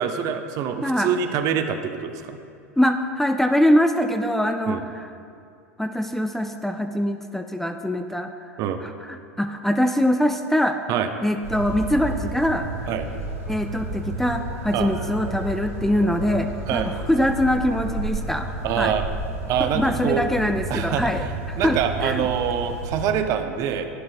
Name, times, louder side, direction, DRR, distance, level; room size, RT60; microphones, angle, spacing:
voice 1, 0.0-2.4 4.7-4.8 8.6-8.8 10.9-11.1 12.9-13.1 14.7-14.9 16.7-16.9 18.6-19.1 19.5-20.2 20.7-21.1 21.6-23.9, right 8 dB, 45° right, 7 dB, 0.6 m, -25 dB
voice 2, 2.8-5.1 5.8-8.3 8.8-10.8 11.2-12.7 13.5-18.5 18.8-18.9 19.6-22.2, left 1 dB, 5° left, 6 dB, 0.4 m, -23 dB
sound 1, 11.4-23.1, right 2 dB, 90° right, 2.1 m, -32 dB
11.0 x 10.0 x 2.2 m, 2.5 s
hypercardioid pair, 85°, 8 cm